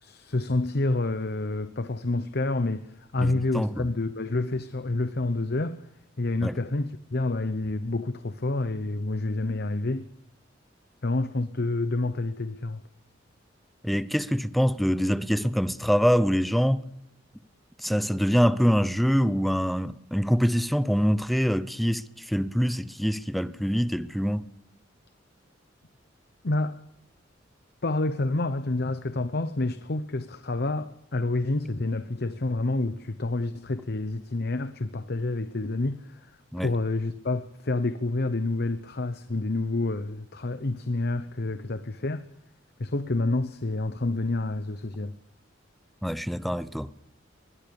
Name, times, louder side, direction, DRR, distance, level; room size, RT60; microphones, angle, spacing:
voice 1, 0.0-2.9 3.1-5.8 6.2-10.1 11.0-12.8 26.4-26.8 27.8-36.2 36.6-42.2 42.8-45.1, left 2 dB, 55° left, 0.9 m, -28 dB
voice 2, 3.2-3.9 6.4-6.6 13.8-16.8 17.8-24.5 36.5-36.7 46.0-46.9, equal, ahead, 0.8 m, -25 dB
22.5 x 21.5 x 7.0 m
head